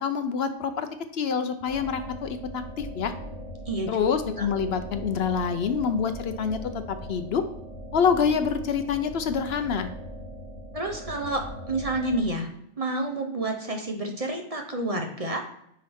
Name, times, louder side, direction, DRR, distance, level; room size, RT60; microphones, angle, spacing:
voice 1, 0.0-0.9 1.1-3.1 3.9-7.4 7.9-9.9, left 6 dB, 65° left, 9 dB, 0.8 m, -26 dB
sound 1, 1.6-12.2, equal, 50° left, 3.0 m, -40 dB
voice 2, 3.7-4.1 4.4-4.5 10.7-12.5 12.8-15.4, right 2 dB, 35° right, 3 dB, 0.8 m, -29 dB
9.5 x 3.7 x 3.5 m, 0.76 s
omnidirectional pair, 1.2 m